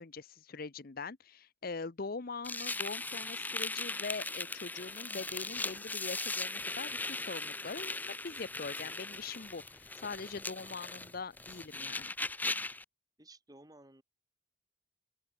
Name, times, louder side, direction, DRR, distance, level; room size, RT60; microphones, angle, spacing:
voice 1, 0.0-12.1, left 4 dB, 50° left, 0.7 m, -42 dB
sound 1, 2.4-12.8, left 3 dB, 10° left, 0.6 m, -39 dB
voice 2, 13.2-14.0, right 2 dB, 20° right, 2.4 m, -56 dB
open air
head